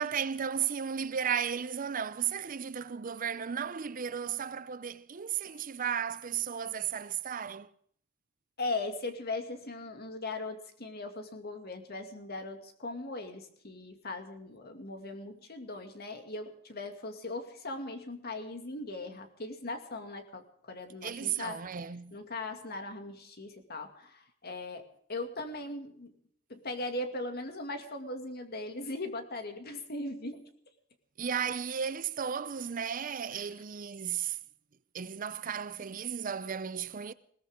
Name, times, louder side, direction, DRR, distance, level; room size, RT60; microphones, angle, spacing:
voice 1, 0.0-7.7 21.0-22.2 31.2-34.4 34.9-37.1, right 8 dB, 40° right, 0.5 m, -34 dB
voice 2, 8.6-21.6 22.1-24.8 25.1-26.1 26.5-30.4 33.3-33.4, left 2 dB, 50° left, 2.3 m, -39 dB
20.5 x 17.5 x 3.7 m
head